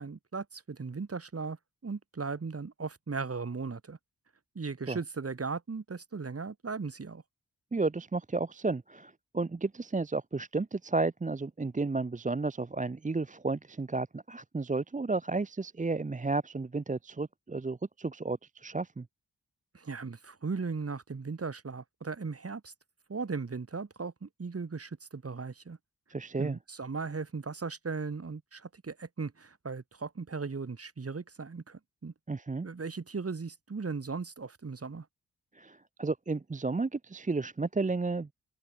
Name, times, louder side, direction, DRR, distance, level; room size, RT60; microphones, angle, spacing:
voice 1, 0.0-1.6 1.8-4.0 4.5-7.2 19.7-22.7 23.1-25.8 26.4-32.1 32.6-35.1, right 4 dB, 40° right, 2.4 m, -37 dB
voice 2, 7.7-19.1 26.1-26.6 32.3-32.7 35.5-38.3, right 3 dB, 20° right, 0.7 m, -32 dB
open air
wide cardioid pair, 85°, 35 cm